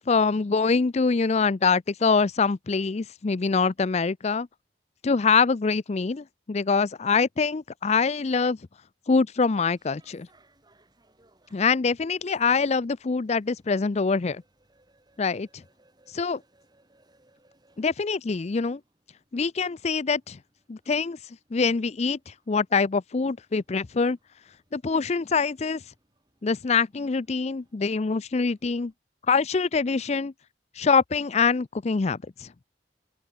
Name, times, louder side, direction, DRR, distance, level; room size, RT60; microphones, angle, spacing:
voice 1, 0.1-4.5 5.0-8.6 9.1-10.3 11.5-14.4 15.2-15.6 16.1-16.4 17.8-18.8 19.3-20.4 20.7-21.2 21.5-24.2 24.7-25.8 26.4-28.9 29.3-30.3 30.8-32.5, left 4 dB, 35° left, 0.5 m, -24 dB
sound 1, 9.3-28.9, right 1 dB, 25° right, 6.3 m, -66 dB
open air
head